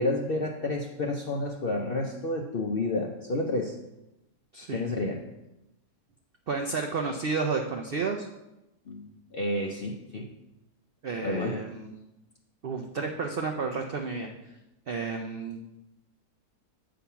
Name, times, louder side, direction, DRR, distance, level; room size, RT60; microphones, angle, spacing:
voice 1, 0.0-3.8 4.7-5.3 8.9-10.3 11.2-11.6, left 2 dB, 70° left, 1 dB, 0.5 m, -30 dB
voice 2, 4.5-4.8 6.5-8.3 11.0-11.9 12.6-14.3 14.9-15.6, right 4 dB, 85° right, 3 dB, 0.5 m, -31 dB
8.3 x 3.8 x 5.7 m, 0.95 s
omnidirectional pair, 1.7 m